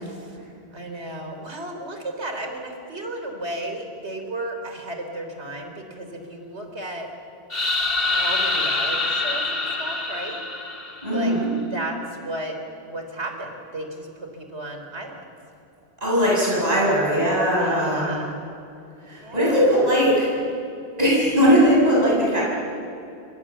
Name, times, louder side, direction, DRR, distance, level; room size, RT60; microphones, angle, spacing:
voice 1, 0.0-0.4 0.7-7.1 8.1-10.4 11.1-11.3 11.7-12.6 12.9-15.3 17.5-18.4 19.2-19.7, right 1 dB, 85° right, 4 dB, 4.2 m, -34 dB
sound 1, 7.5-11.3, left 2 dB, 60° left, 2.6 m, -25 dB
voice 2, 11.0-11.5 16.0-18.2 19.0-20.3 21.0-22.4, equal, 35° right, -5 dB, 8.0 m, -19 dB
29.5 x 25.0 x 7.5 m, 2.6 s
omnidirectional pair, 1.1 m